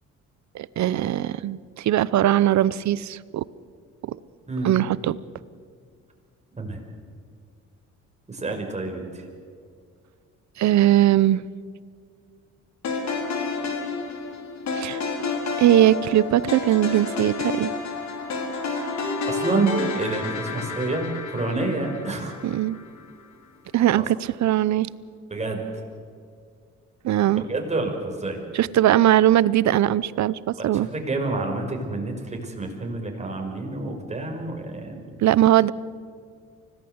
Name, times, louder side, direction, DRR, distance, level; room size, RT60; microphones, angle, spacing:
voice 1, 0.5-3.4 4.1-4.2 4.6-5.2 10.6-11.4 14.7-15.0 15.6-17.7 22.4-22.8 23.7-24.9 27.0-27.4 28.5-30.9 35.2-35.7, right 13 dB, 65° right, 19 dB, 0.8 m, -20 dB
voice 2, 8.3-9.3 19.3-22.4 24.0-24.1 25.3-25.6 27.4-28.4 30.6-35.3, right 2 dB, 20° right, 2 dB, 5.4 m, -28 dB
sound 1, 12.8-23.1, left 3 dB, 65° left, 4.1 m, -30 dB
25.0 x 18.0 x 8.0 m, 2.2 s
cardioid pair, 90°, 30 cm